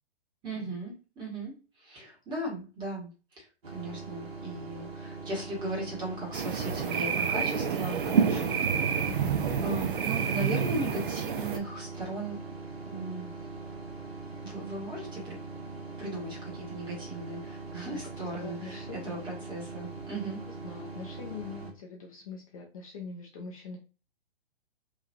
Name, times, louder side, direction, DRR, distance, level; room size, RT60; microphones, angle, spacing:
voice 1, 0.4-9.1 9.6-12.4 12.8-13.3 14.4-15.4 16.0-20.4, right 2 dB, 15° right, -2 dB, 1.0 m, -37 dB
sound 1, 3.6-21.7, right 3 dB, 70° right, 1.3 m, -42 dB
sound 2, 6.3-11.6, right 7 dB, 55° right, 0.5 m, -28 dB
voice 2, 9.1-9.9 17.9-19.2 20.6-23.8, left 5 dB, 35° left, 0 dB, 0.5 m, -43 dB
2.9 x 2.3 x 2.6 m, 0.32 s
figure-of-eight pair, 120°, 32 cm